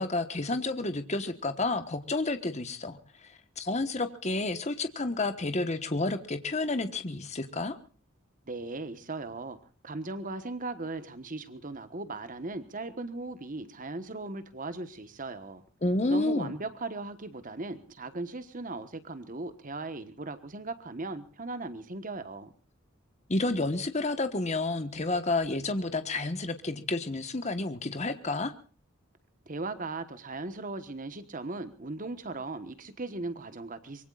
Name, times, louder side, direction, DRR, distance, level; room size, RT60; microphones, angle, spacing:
voice 1, 0.0-7.8 15.8-16.5 23.3-28.5, left 2 dB, 35° left, 9 dB, 1.3 m, -30 dB
voice 2, 8.5-9.6 9.8-15.6 16.1-22.5 29.5-34.1, right 2 dB, 40° right, 11 dB, 1.3 m, -38 dB
24.5 x 23.0 x 2.5 m, 0.39 s
head